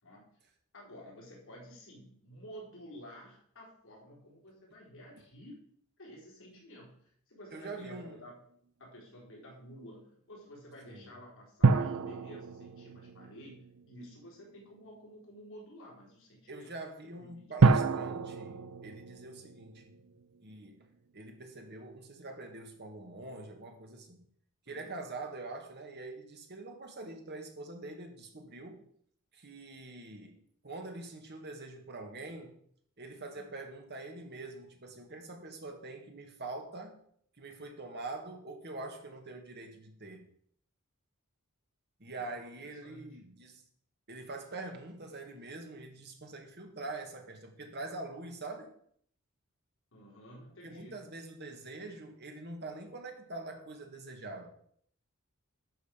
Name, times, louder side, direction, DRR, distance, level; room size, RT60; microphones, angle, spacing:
voice 1, 0.0-0.4 0.7-5.7 6.0-8.4 8.8-16.7 17.1-17.6 24.7-24.9 33.3-33.5 42.2-42.3 42.6-43.2 49.9-51.0, equal, 65° left, 4.2 m, -51 dB
voice 2, 7.5-8.2 10.9-11.2 16.5-19.9 20.4-20.9 21.1-24.2 24.7-28.9 29.3-32.6 33.0-37.0 37.4-40.3 42.0-43.6 44.1-48.7 50.6-54.5, right 2 dB, 50° right, 1.9 m, -44 dB
sound 1, 11.6-14.2 17.6-20.2 20.5-20.6, right 4 dB, 80° right, 0.6 m, -29 dB
11.5 x 6.6 x 5.1 m
head